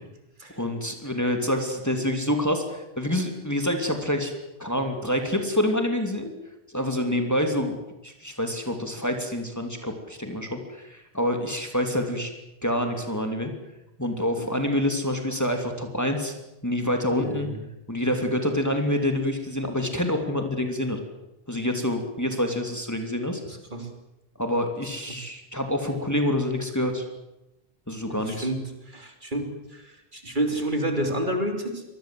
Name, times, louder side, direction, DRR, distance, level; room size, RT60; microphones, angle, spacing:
voice 1, 0.5-4.3 4.6-6.3 6.7-7.8 8.0-12.3 12.6-13.5 14.0-16.3 16.6-17.5 17.9-21.0 21.5-23.4 24.4-27.0 27.9-28.5, left 1 dB, 15° left, 4 dB, 2.9 m, -27 dB
voice 2, 17.2-17.6 23.5-23.9 25.1-25.2 28.1-31.8, right 1 dB, 50° right, 5 dB, 3.4 m, -30 dB
25.5 x 20.5 x 7.7 m, 0.93 s
omnidirectional pair, 1.1 m